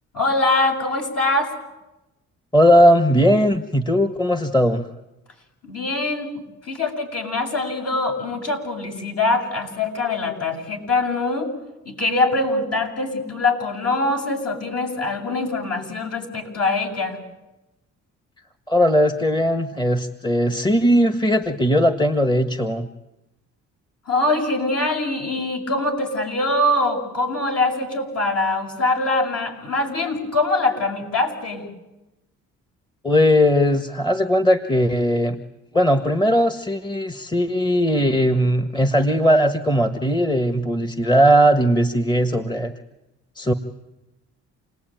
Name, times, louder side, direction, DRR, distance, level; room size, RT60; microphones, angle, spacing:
voice 1, 0.1-1.5 5.6-6.3 6.6-11.5 11.8-17.2 24.1-31.6, left 2 dB, 55° left, 2 dB, 8.0 m, -23 dB
voice 2, 2.5-4.9 18.7-22.9 33.0-35.4 35.7-42.7 43.3-43.5, equal, 15° left, 7 dB, 1.5 m, -18 dB
29.0 x 19.5 x 9.3 m, 0.97 s
cardioid pair, 90°, 30 cm